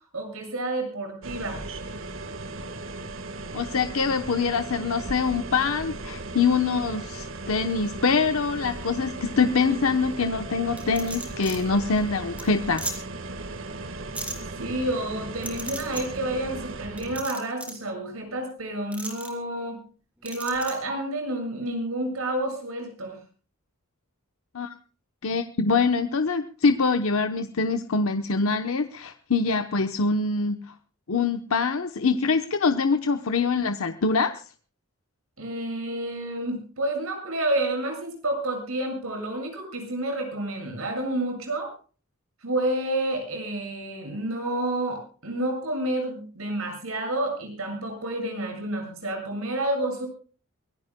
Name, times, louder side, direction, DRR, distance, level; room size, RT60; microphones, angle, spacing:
voice 1, 0.1-1.6 14.4-19.8 20.2-23.2 35.4-41.7 42.4-50.1, right 1 dB, 80° right, 3 dB, 7.6 m, -29 dB
sound 1, 1.2-17.2, right 2 dB, 65° right, 1.5 m, -37 dB
voice 2, 3.5-12.8 24.5-24.7 25.2-30.7 31.1-34.4, left 4 dB, 80° left, 7 dB, 0.9 m, -24 dB
sound 2, 10.8-11.6 12.0-12.1 12.4-12.5 12.8-12.9 14.1-14.3 15.4-16.0 17.0-17.8 18.9-19.3 20.2-20.7, right 2 dB, 5° right, 3.0 m, -35 dB
24.0 x 17.5 x 2.2 m, 0.38 s
head